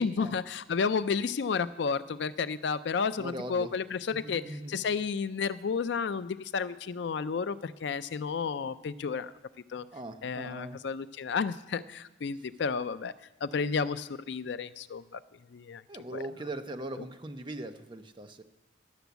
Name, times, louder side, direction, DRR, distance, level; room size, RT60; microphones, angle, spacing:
voice 1, 0.0-9.3 9.7-9.8 10.2-13.1 13.4-15.2 15.5-15.8 16.1-16.2 17.0-17.1, left 5 dB, 60° left, 14 dB, 0.4 m, -32 dB
voice 2, 3.2-3.7 4.2-4.8 9.9-10.8 15.9-18.4, right 1 dB, 25° right, 7 dB, 0.7 m, -40 dB
11.5 x 7.0 x 8.1 m, 0.98 s
head